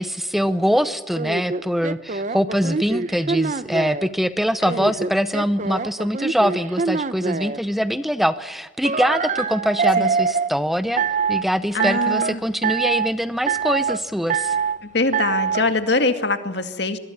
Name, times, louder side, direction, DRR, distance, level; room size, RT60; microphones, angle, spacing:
voice 1, 0.0-11.0 11.3-14.6, equal, ahead, 12 dB, 0.7 m, -23 dB
sound 1, 1.1-4.1 4.6-7.6 8.8-10.5 11.0-11.4 11.8-12.3 12.6-13.1 13.5-14.0 14.3-14.8 15.1-15.7, right 5 dB, 40° right, 0.8 m, -24 dB
voice 2, 4.6-4.9 10.0-10.1 11.7-12.4 14.8-17.0, left 3 dB, 60° left, 8 dB, 2.2 m, -23 dB
25.5 x 22.0 x 7.2 m, 1.2 s
head